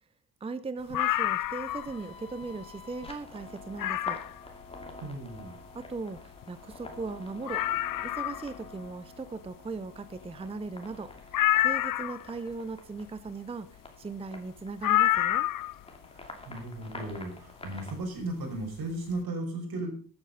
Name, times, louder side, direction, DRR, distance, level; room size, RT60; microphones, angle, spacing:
voice 1, 0.4-4.2 5.7-7.6 8.0-11.3 11.6-15.5, right 3 dB, 15° right, 14 dB, 0.6 m, -38 dB
sound 1, 0.9-2.0 2.4-2.5 3.0-3.1 3.8-4.4 6.2-6.3 6.4-6.5 7.0-7.1 7.5-8.5 11.3-12.3 14.8-15.8 17.1-17.2, left 14 dB, 65° left, 0.5 m, -27 dB
sound 2, 1.7-18.0, left 2 dB, 15° left, 2.6 m, -48 dB
voice 2, 5.0-5.6 16.5-19.9, right 2 dB, 75° right, 2 dB, 5.5 m, -35 dB
14.0 x 9.2 x 5.5 m, 0.42 s
wide cardioid pair, 160°, 37 cm